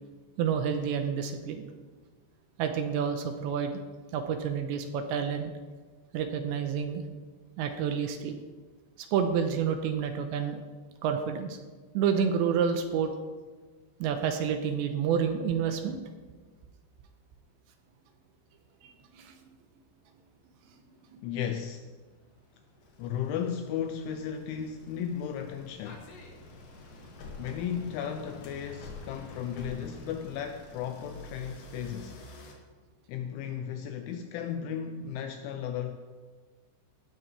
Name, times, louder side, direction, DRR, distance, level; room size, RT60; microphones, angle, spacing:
voice 1, 0.4-1.6 2.6-3.8 4.1-5.5 6.1-7.0 7.6-8.4 9.0-10.6 11.0-11.6 11.9-13.1 14.0-16.0 18.8-19.3 21.1-21.2, right 7 dB, 80° right, 2.7 m, -29 dB
sound 1, 20.8-21.1 21.7-32.5, left 3 dB, 55° left, 2.7 m, -48 dB
voice 2, 21.2-21.9 23.0-26.1 27.4-32.2 33.1-36.0, left 8 dB, 85° left, 2.8 m, -35 dB
18.0 x 13.0 x 3.4 m
omnidirectional pair, 6.0 m